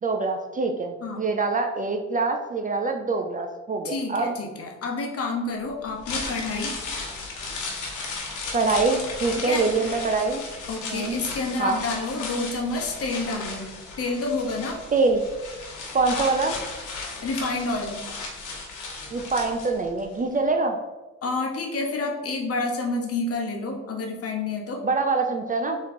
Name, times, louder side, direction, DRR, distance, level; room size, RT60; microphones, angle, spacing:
voice 1, 0.0-4.3 8.5-10.4 10.9-11.2 11.6-11.8 14.9-15.2 15.9-16.6 19.1-20.8 24.8-25.8, right 3 dB, 30° right, 5 dB, 0.4 m, -24 dB
voice 2, 3.8-6.7 9.4-9.6 10.7-14.8 17.2-18.0 21.2-24.8, left 3 dB, 50° left, 1 dB, 1.0 m, -29 dB
sound 1, 5.8-20.0 20.3-20.4, left 3 dB, 80° left, 1.1 m, -35 dB
3.8 x 3.0 x 4.3 m, 1.1 s
cardioid pair, 90°, 30 cm